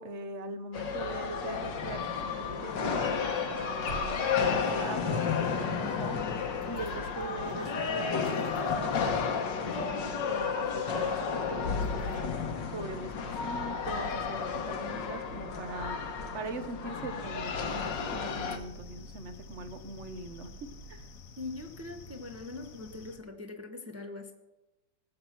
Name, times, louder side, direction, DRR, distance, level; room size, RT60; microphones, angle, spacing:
voice 1, 0.0-21.1, right 2 dB, 45° right, 9 dB, 1.1 m, -42 dB
sound 1, 0.7-18.6, left 6 dB, 80° left, 1.7 m, -32 dB
sound 2, 3.6-6.2 6.6-6.9 7.2-9.1 9.4-9.5 9.7-9.8 10.4-10.7 10.9-21.1, right 4 dB, 85° right, 2.0 m, -50 dB
sound 3, 17.6-23.2, left 5 dB, 55° left, 1.3 m, -51 dB
voice 2, 21.4-24.3, left 3 dB, 10° right, 4 dB, 0.7 m, -42 dB
18.5 x 7.3 x 5.9 m, 1.0 s
omnidirectional pair, 2.0 m